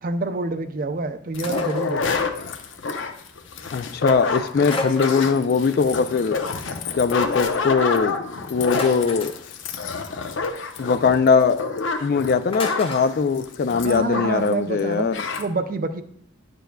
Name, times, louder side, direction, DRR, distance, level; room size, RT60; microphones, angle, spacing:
voice 1, 0.0-2.2 13.8-15.1 15.4-16.0, right 3 dB, 45° right, 10 dB, 0.5 m, -27 dB
sound 1, 1.3-14.5 14.8-14.9 15.1-15.4, left 5 dB, 70° left, 0.7 m, -28 dB
sound 2, 1.4-1.9 4.7-5.5 8.7-9.4 12.5-13.1, left 2 dB, 25° left, 0.8 m, -31 dB
voice 2, 3.7-6.4 7.0-9.3 10.8-11.7 12.0-15.2, left 5 dB, 50° left, 13 dB, 0.3 m, -21 dB
10.5 x 6.9 x 2.2 m, 0.66 s
head